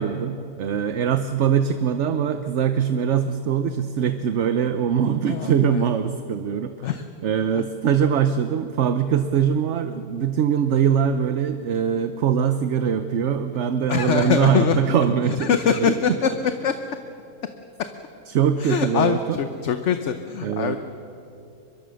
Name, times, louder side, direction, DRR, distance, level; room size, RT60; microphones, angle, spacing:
voice 1, 0.0-6.9 7.2-16.2 18.3-19.4 20.4-20.8, right 8 dB, 60° right, 10 dB, 1.0 m, -22 dB
voice 2, 5.3-5.9 6.8-7.0 7.5-7.6 13.9-14.8 15.4-16.3 16.6-16.8 17.8-17.9 18.6-20.8, left 8 dB, 60° left, 9 dB, 1.1 m, -23 dB
23.5 x 22.5 x 6.4 m, 2.7 s
omnidirectional pair, 1.5 m